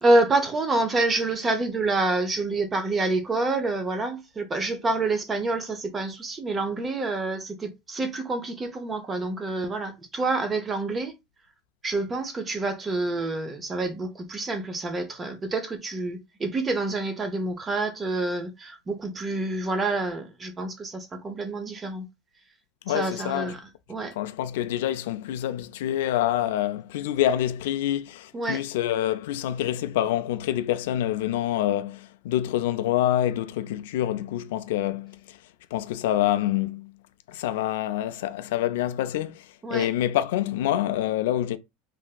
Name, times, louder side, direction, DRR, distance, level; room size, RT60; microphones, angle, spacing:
voice 1, 0.0-11.1 11.8-22.1 22.9-24.1 28.3-28.6 39.6-39.9, right 2 dB, 15° right, 0.5 m, -27 dB
voice 2, 22.9-23.5 24.2-35.4 35.7-36.9 37.3-41.6, left 12 dB, 80° left, 0.3 m, -26 dB
3.3 x 2.7 x 2.2 m
supercardioid pair, 160°, 0 cm